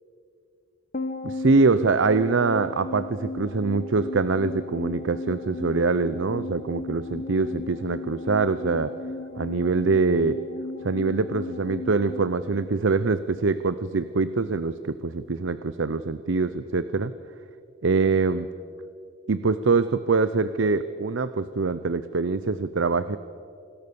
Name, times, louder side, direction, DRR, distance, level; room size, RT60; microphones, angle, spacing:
sound 1, 0.9-13.5 13.7-13.8, left 2 dB, 40° left, 1.2 m, -36 dB
voice 1, 1.2-8.9 9.4-10.4 10.8-17.1 17.8-18.5 19.3-23.2, right 4 dB, 65° right, 13 dB, 0.6 m, -24 dB
27.0 x 20.0 x 7.0 m, 2.5 s
head